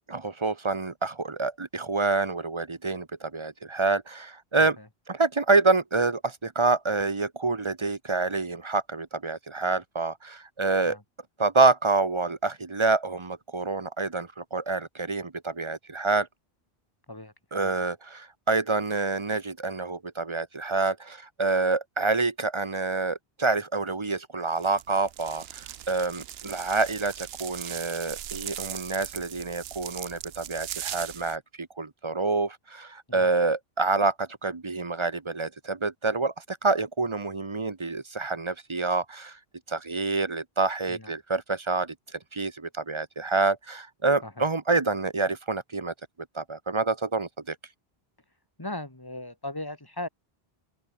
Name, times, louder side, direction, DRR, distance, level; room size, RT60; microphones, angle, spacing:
voice 1, 0.1-4.8 5.1-11.0 11.4-16.3 17.5-39.4 39.7-45.9 46.3-47.6, right 3 dB, 30° right, 1.0 m, -27 dB
sound 1, 24.6-31.4, right 11 dB, 75° right, 0.8 m, -39 dB
voice 2, 48.6-50.1, left 1 dB, 20° left, 1.8 m, -38 dB
open air
omnidirectional pair, 1.0 m